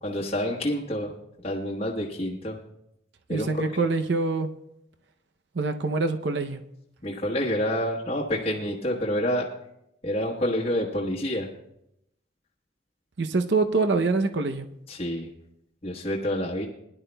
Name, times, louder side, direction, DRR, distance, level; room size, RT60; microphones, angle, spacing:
voice 1, 0.0-1.1 1.4-2.6 3.3-3.8 7.0-9.5 10.0-11.5 14.9-15.3 15.8-16.7, equal, 30° left, -4 dB, 1.2 m, -28 dB
voice 2, 3.3-4.5 5.5-6.6 13.2-14.7, right 3 dB, 65° right, 7 dB, 0.6 m, -25 dB
20.5 x 11.0 x 2.2 m, 0.79 s
head